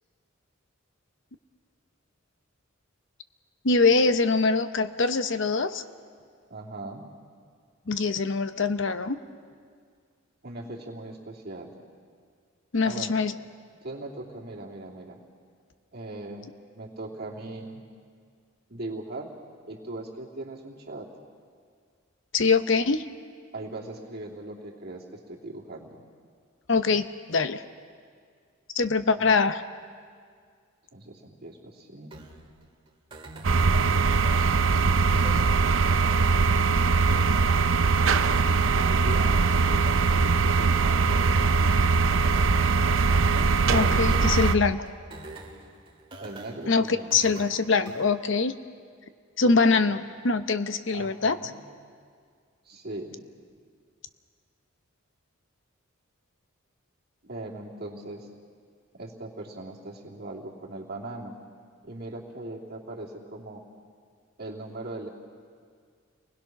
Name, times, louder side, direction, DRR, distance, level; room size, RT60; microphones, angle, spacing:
voice 1, 3.6-5.8 7.9-9.2 12.7-13.3 22.3-23.1 26.7-27.6 28.7-29.6 43.7-44.8 46.7-48.6 49.4-51.4, left 4 dB, 60° left, 11 dB, 0.8 m, -23 dB
voice 2, 6.5-7.1 10.4-11.7 12.8-13.2 13.8-15.2 15.9-16.5 16.7-17.9 18.7-19.3 19.6-21.1 23.5-25.9 29.2-29.3 30.9-32.3 38.2-41.3 46.2-47.4 49.4-49.9 50.8-51.6 52.6-53.2 57.2-58.3 58.9-61.4 61.8-63.6 64.4-65.1, right 2 dB, 50° right, -2 dB, 2.8 m, -40 dB
sound 1, 32.1-48.1, right 1 dB, 25° right, 2.1 m, -46 dB
sound 2, 33.4-44.6, right 4 dB, 70° right, 0.6 m, -21 dB
29.5 x 20.5 x 6.0 m, 2.1 s
head